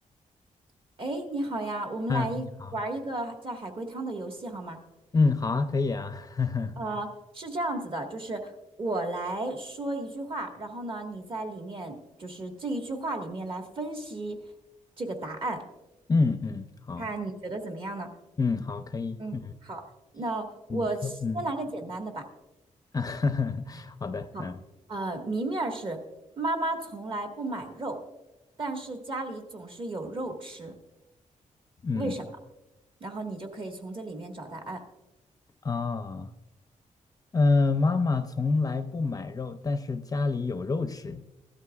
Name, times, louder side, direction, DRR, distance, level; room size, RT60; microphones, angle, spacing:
voice 1, 1.0-2.5 2.7-4.8 6.8-7.1 7.3-8.5 8.8-14.4 15.0-15.6 17.0-18.1 19.2-19.4 19.6-19.8 20.1-22.3 24.3-24.5 24.9-26.0 26.4-28.0 28.6-30.7 31.9-32.2 33.0-34.8, right 2 dB, 40° right, 3 dB, 1.7 m, -33 dB
voice 2, 2.1-2.7 5.1-6.8 16.1-17.1 18.4-19.5 20.7-21.4 22.9-24.5 31.8-32.1 35.6-36.3 37.3-41.2, left 4 dB, 25° left, 9 dB, 0.5 m, -27 dB
16.5 x 12.5 x 2.4 m, 1.0 s
cardioid pair, 120°, 13 cm